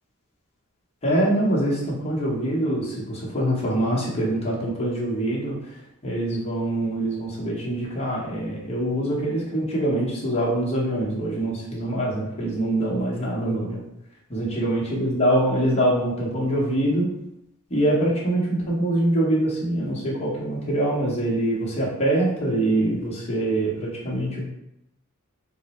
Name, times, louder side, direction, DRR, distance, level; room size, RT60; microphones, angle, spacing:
voice 1, 1.0-13.9 14.3-17.1 17.7-24.4, right 1 dB, 30° left, -5 dB, 1.0 m, -24 dB
3.6 x 2.0 x 4.2 m, 0.86 s
head